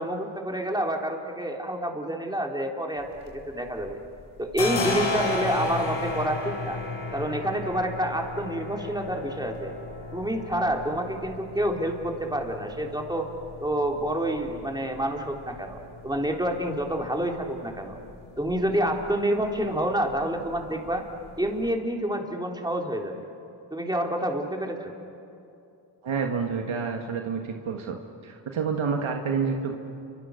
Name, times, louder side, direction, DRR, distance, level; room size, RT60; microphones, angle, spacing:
voice 1, 0.0-3.1 3.3-4.0 4.4-6.8 7.1-9.7 10.1-13.3 13.6-15.8 16.0-18.0 18.4-21.0 21.4-23.2 23.7-24.9, right 1 dB, 10° right, 1 dB, 3.5 m, -28 dB
sound 1, 3.0-21.7, left 3 dB, 80° left, 4.1 m, -36 dB
voice 2, 26.0-28.0 28.2-29.7, right 5 dB, 75° right, 3 dB, 1.7 m, -28 dB
29.5 x 25.5 x 6.6 m, 2.7 s
cardioid pair, 55°, 48 cm